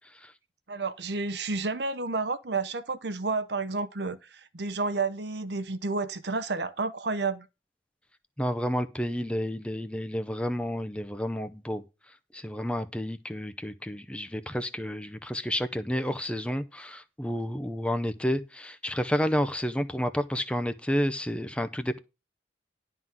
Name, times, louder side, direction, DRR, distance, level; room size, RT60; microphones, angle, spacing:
voice 1, 0.7-7.5, right 3 dB, 65° right, 0.9 m, -31 dB
voice 2, 8.4-11.8 12.3-22.0, equal, 5° left, 0.6 m, -30 dB
11.0 x 3.9 x 7.4 m
head